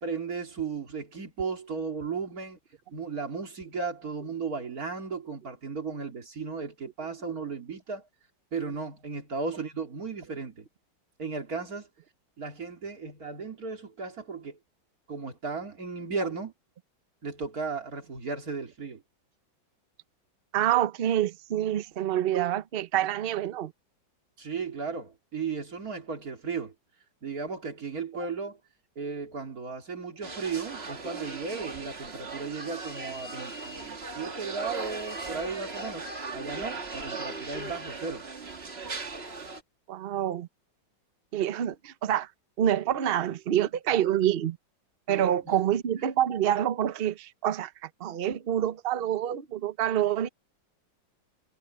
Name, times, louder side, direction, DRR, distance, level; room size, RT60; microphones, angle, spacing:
voice 1, 0.0-2.6 2.9-8.1 8.5-10.7 11.2-11.9 12.4-14.6 15.1-16.5 17.2-19.0 24.4-26.7 27.2-28.6 29.0-36.1 36.3-38.3 45.1-45.6, right 5 dB, 50° right, 3.1 m, -35 dB
voice 2, 20.5-23.7 39.9-40.5 41.3-42.3 42.6-44.6 45.1-50.3, right 11 dB, 80° right, 0.5 m, -27 dB
sound 1, 30.2-39.6, right 3 dB, 35° right, 2.0 m, -38 dB
omnidirectional pair, 2.1 m